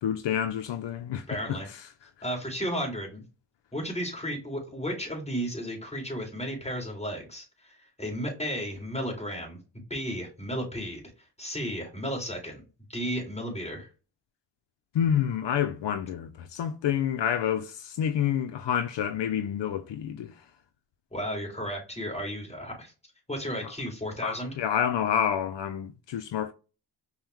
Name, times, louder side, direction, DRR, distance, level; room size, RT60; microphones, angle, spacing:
voice 1, 0.0-1.9 14.9-20.3 23.6-23.7 24.2-26.5, left 9 dB, 80° left, 0.5 m, -28 dB
voice 2, 1.3-1.7 2.2-3.2 3.7-9.6 9.9-11.0 11.4-12.6 12.9-13.9 21.1-22.9 23.3-24.5, equal, 15° left, 2.2 m, -33 dB
5.4 x 2.2 x 3.0 m
cardioid pair, 60°, 43 cm